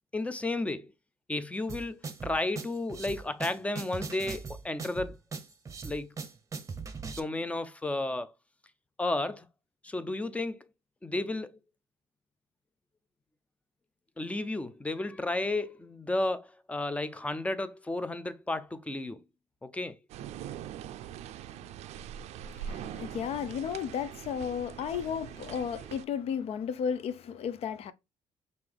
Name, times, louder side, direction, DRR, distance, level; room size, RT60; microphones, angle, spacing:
voice 1, 0.1-0.9 1.3-5.2 5.8-6.1 7.0-8.3 9.0-9.5 9.8-10.6 11.0-11.6 14.2-19.2 19.6-20.0, left 2 dB, 10° left, 0.5 m, -33 dB
sound 1, 1.7-7.2, right 5 dB, 30° right, 0.7 m, -40 dB
sound 2, 20.1-26.0, right 9 dB, 75° right, 0.4 m, -42 dB
voice 2, 22.4-27.9, left 7 dB, 65° left, 0.5 m, -34 dB
5.5 x 2.6 x 3.3 m
cardioid pair, 105°, 11 cm